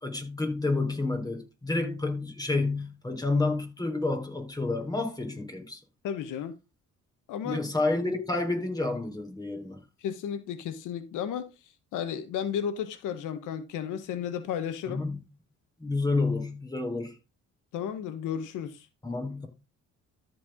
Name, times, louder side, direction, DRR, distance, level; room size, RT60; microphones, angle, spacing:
voice 1, 0.0-5.8 7.4-9.8 14.9-15.2 15.8-17.2 19.0-19.5, left 3 dB, 10° left, 3.7 m, -29 dB
voice 2, 6.0-6.5 7.3-7.7 10.0-11.5 11.9-15.0 17.7-18.9, left 8 dB, 90° left, 1.2 m, -33 dB
13.5 x 4.7 x 3.6 m
cardioid pair, 90°, 30 cm